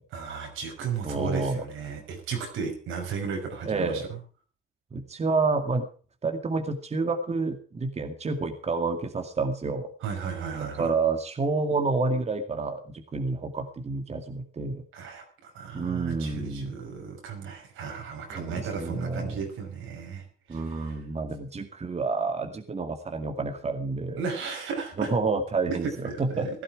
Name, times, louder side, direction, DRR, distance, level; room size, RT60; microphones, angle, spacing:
voice 1, 0.1-4.2 10.0-10.9 14.9-21.0 24.2-25.1 25.7-25.8 26.0-26.5, right 6 dB, 90° right, 3 dB, 5.8 m, -35 dB
voice 2, 1.0-1.6 3.7-4.0 4.9-5.8 6.2-9.9 10.8-14.8 15.7-16.7 18.3-19.4 20.5-24.2 25.0-26.5, right 3 dB, 35° right, 6 dB, 2.2 m, -29 dB
16.0 x 12.5 x 4.9 m, 0.39 s
cardioid pair, 90°, 20 cm